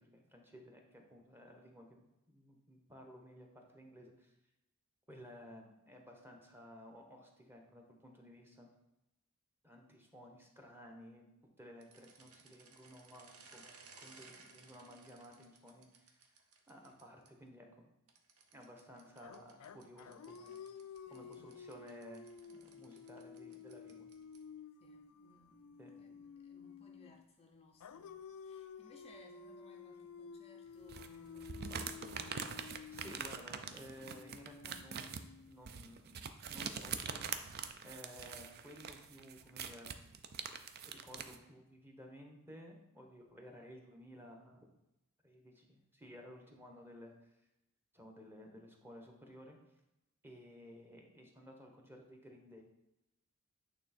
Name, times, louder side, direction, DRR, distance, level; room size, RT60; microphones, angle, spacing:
voice 1, 0.0-2.0 2.3-4.3 5.1-8.7 9.6-11.3 11.6-16.2 16.7-17.9 18.5-20.6 21.1-24.1 25.8-25.9 31.7-31.8 32.9-37.6 37.8-39.9 40.8-44.7 45.2-47.1 47.9-49.6 50.2-52.6, equal, 10° right, 1.0 m, -55 dB
sound 1, 11.8-17.3 18.1-24.6, right 4 dB, 85° right, 0.9 m, -62 dB
sound 2, 19.2-27.3 27.8-35.9, left 6 dB, 85° left, 0.4 m, -53 dB
voice 2, 20.8-21.5 24.8-32.4, left 2 dB, 30° left, 0.5 m, -63 dB
sound 3, 30.9-41.4, right 6 dB, 45° right, 0.4 m, -44 dB
8.9 x 3.4 x 4.3 m
head